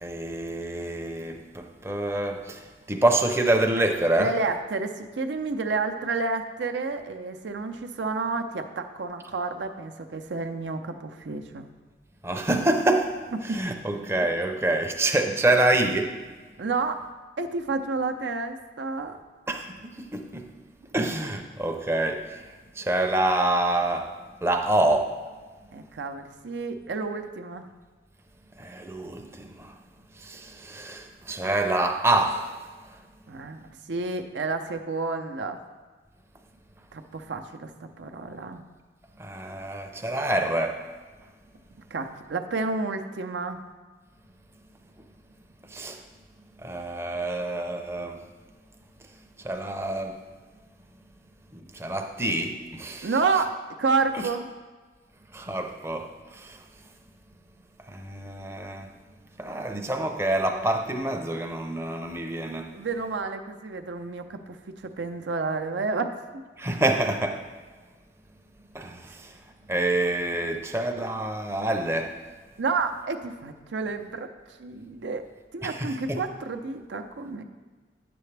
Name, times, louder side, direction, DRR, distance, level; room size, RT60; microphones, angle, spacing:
voice 1, 0.0-2.6 2.9-4.3 12.2-16.2 19.5-20.5 20.9-22.4 22.8-24.1 24.4-25.1 28.6-29.7 30.2-32.6 39.2-40.8 45.7-46.0 46.6-48.2 49.4-50.2 51.5-53.1 54.1-54.3 55.3-56.6 57.9-58.9 59.4-62.7 66.6-67.4 68.7-69.3 69.7-72.2 75.6-76.2, right 1 dB, 15° right, 0.5 m, -27 dB
voice 2, 4.2-11.7 13.5-13.7 16.6-17.0 17.4-19.2 25.7-27.6 33.3-35.6 36.9-38.6 41.9-43.6 53.0-54.5 62.7-64.6 64.8-66.1 72.6-74.3 74.6-75.2 75.5-77.4, right 4 dB, 85° right, 0.6 m, -30 dB
9.2 x 6.9 x 3.3 m
head